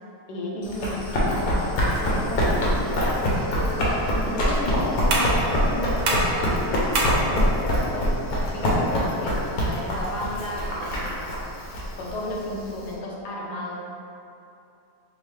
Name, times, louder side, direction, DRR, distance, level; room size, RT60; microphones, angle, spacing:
voice 1, 0.3-3.8 4.2-8.1 8.5-11.2 12.0-13.7, left 1 dB, 85° left, -3 dB, 1.2 m, -33 dB
Run, 0.6-12.9, equal, 70° left, 1.2 m, -24 dB
sound 1, 5.1-10.6, right 1 dB, 90° right, 1.3 m, -31 dB
5.3 x 2.0 x 3.1 m, 2.7 s
omnidirectional pair, 1.7 m